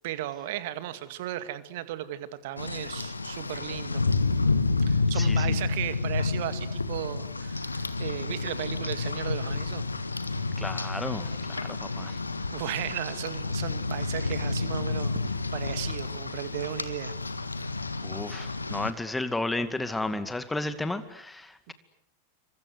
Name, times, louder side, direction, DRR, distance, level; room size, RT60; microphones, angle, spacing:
voice 1, 0.0-4.0 4.9-9.9 12.5-17.1 17.6-17.8 21.7-21.8, right 13 dB, 50° right, 12 dB, 2.2 m, -36 dB
Rain, 2.6-18.9, left 3 dB, 80° left, 1.7 m, -30 dB
voice 2, 5.1-5.6 10.6-12.2 18.0-21.7, left 2 dB, 5° left, 11 dB, 2.3 m, -33 dB
28.0 x 25.5 x 8.2 m, 0.74 s
figure-of-eight pair, 90°, 0 cm